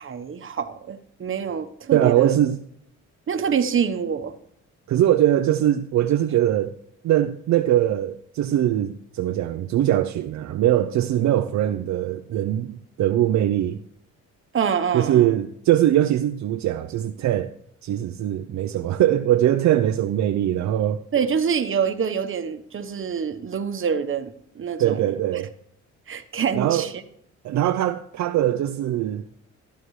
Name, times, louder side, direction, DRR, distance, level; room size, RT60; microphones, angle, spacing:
voice 1, 0.0-2.3 3.3-4.4 14.5-15.4 21.1-25.0 26.1-26.9, right 7 dB, 45° right, 1.1 m, -26 dB
voice 2, 1.9-2.6 4.9-6.8 7.0-13.8 14.9-17.5 17.8-21.0 24.8-25.5 26.5-26.9 27.4-29.2, right 12 dB, 65° right, 0.6 m, -21 dB
14.5 x 11.5 x 3.2 m
cardioid pair, 90°, 30 cm